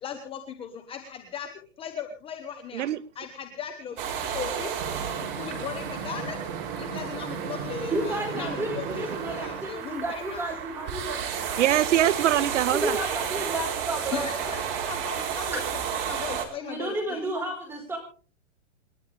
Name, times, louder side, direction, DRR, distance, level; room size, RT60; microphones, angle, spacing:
voice 1, 0.0-1.5 1.8-2.9 3.1-4.8 5.4-6.4 6.8-10.4 14.1-17.2, left 7 dB, 15° left, 1.2 m, -38 dB
sound 1, 4.0-16.5, right 7 dB, 35° right, 3.8 m, -32 dB
voice 2, 7.9-11.2 11.4-11.7 12.6-14.5 15.5-15.6 16.6-18.0, right 1 dB, 5° right, 5.0 m, -32 dB
voice 3, 11.6-13.0, right 12 dB, 65° right, 0.7 m, -23 dB
28.0 x 11.0 x 3.5 m
hypercardioid pair, 155°, 38 cm